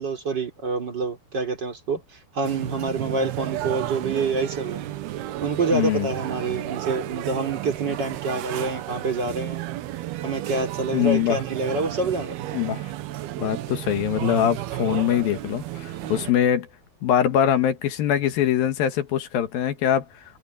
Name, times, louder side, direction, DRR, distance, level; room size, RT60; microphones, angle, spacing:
voice 1, 0.0-4.9 5.4-9.6 10.2-12.3 16.0-16.3, right 3 dB, 25° right, 3.8 m, -27 dB
sound 1, 2.4-16.3, right 14 dB, 75° right, 3.1 m, -33 dB
voice 2, 5.7-6.1 10.9-11.4 12.5-12.9 13.4-16.7 17.0-20.1, left 10 dB, 70° left, 3.1 m, -23 dB
omnidirectional pair, 4.6 m